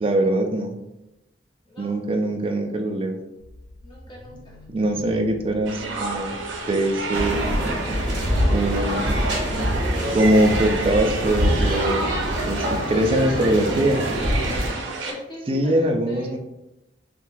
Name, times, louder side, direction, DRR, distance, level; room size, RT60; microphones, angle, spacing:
voice 1, 0.0-0.7 1.8-3.2 4.7-6.3 6.7-7.5 8.5-9.2 10.1-12.1 12.5-14.0 15.5-16.4, right 1 dB, 30° right, 4 dB, 0.3 m, -22 dB
voice 2, 1.6-2.0 3.8-4.6 12.9-13.8 15.0-16.4, left 1 dB, 25° left, -4 dB, 0.8 m, -38 dB
sound 1, 3.4-11.4, left 1 dB, 5° right, 1.1 m, -46 dB
sound 2, 5.7-15.1, right 3 dB, 85° right, 0.5 m, -31 dB
sound 3, 7.1-14.7, equal, 65° right, 0.9 m, -25 dB
3.6 x 2.2 x 2.5 m, 0.94 s
head